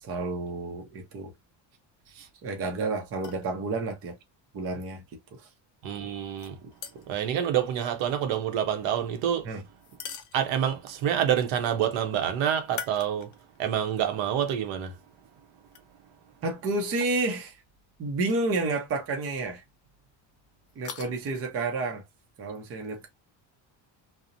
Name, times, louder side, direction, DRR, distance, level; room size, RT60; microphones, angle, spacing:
voice 1, 0.0-1.3 2.4-4.1 4.5-5.0 5.3-5.5 6.6-6.7 9.4-9.6 16.4-17.6 18.0-19.6 20.8-22.0 22.4-23.1, right 3 dB, 30° right, 0.5 m, -30 dB
sound 1, 3.1-3.5 6.4-7.3 9.8-10.8 12.6-13.6 14.1-14.2 15.7-15.8 17.0-17.2 18.2-18.4 18.7-18.8 20.7-21.1, left 8 dB, 45° left, 0.4 m, -42 dB
voice 2, 5.8-6.6 7.1-9.5 10.3-13.3 13.6-14.9, right 9 dB, 85° right, 0.8 m, -27 dB
2.8 x 2.0 x 2.5 m
cardioid pair, 180°, 45 cm